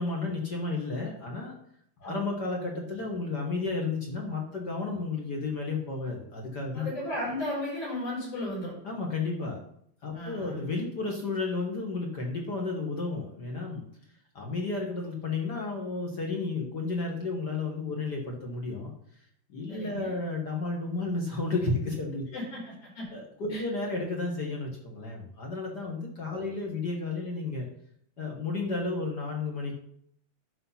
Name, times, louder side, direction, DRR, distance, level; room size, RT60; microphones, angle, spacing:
voice 1, 0.0-1.5 2.0-6.9 8.8-9.6 10.0-13.8 14.3-18.9 19.5-22.4 23.1-27.7 28.2-29.7, left 3 dB, 45° left, 0 dB, 1.3 m, -32 dB
voice 2, 6.7-8.7 10.1-10.6 19.7-20.1 22.3-23.1 23.5-23.6 26.3-26.6, left 1 dB, 70° left, -5 dB, 6.5 m, -35 dB
11.0 x 5.4 x 5.7 m, 0.69 s
omnidirectional pair, 3.7 m